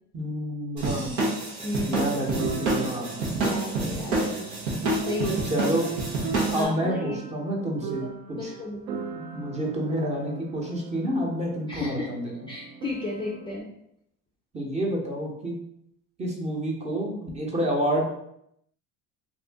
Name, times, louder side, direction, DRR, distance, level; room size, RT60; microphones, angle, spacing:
voice 1, 0.1-1.1 1.8-3.1 5.5-5.9 6.5-8.0 8.3-8.5 9.2-12.3 14.5-15.6 16.2-18.0, equal, 20° right, -1 dB, 0.9 m, -29 dB
sound 1, 0.8-6.6, right 2 dB, 85° right, 1.1 m, -28 dB
voice 2, 1.6-2.0 3.4-4.4 5.0-5.4 6.5-7.2 8.0-8.1 8.4-9.0 11.7-12.1 12.5-13.7, left 2 dB, 15° left, -3 dB, 0.4 m, -33 dB
sound 2, 2.4-13.6, right 6 dB, 65° right, 0.6 m, -38 dB
2.7 x 2.6 x 3.4 m, 0.77 s
supercardioid pair, 105°, 33 cm